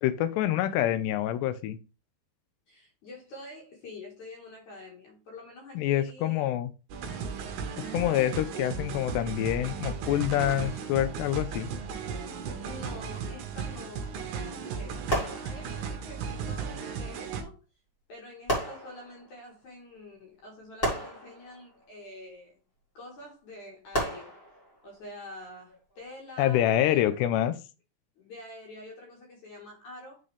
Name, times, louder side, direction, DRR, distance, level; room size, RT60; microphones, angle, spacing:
voice 1, 0.0-1.8 5.8-6.7 7.9-11.7 26.4-27.5, left 12 dB, 85° left, 2.6 m, -26 dB
voice 2, 2.7-6.5 7.9-8.5 12.6-15.0 15.4-17.6 18.1-22.6 22.9-24.4 24.8-27.2 28.2-30.2, left 1 dB, 60° left, 2.4 m, -46 dB
sound 1, 6.9-17.4, right 6 dB, 75° right, 2.6 m, -36 dB
sound 2, 15.1-16.1 17.4-17.5 18.5-19.5 20.8-22.1 23.9-25.0 25.7-26.0, equal, 25° left, 1.1 m, -33 dB
9.6 x 3.9 x 3.3 m
omnidirectional pair, 5.1 m